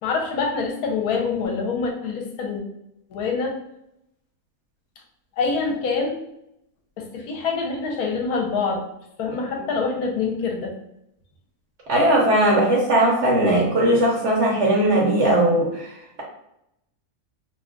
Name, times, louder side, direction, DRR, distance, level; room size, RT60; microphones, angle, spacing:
voice 1, 0.0-2.6 3.1-3.6 5.4-6.2 7.0-8.8 9.2-10.7, left 4 dB, 75° left, 1 dB, 1.1 m, -25 dB
voice 2, 11.9-16.2, right 1 dB, 60° right, -2 dB, 0.8 m, -19 dB
2.7 x 2.3 x 3.6 m, 0.81 s
omnidirectional pair, 1.7 m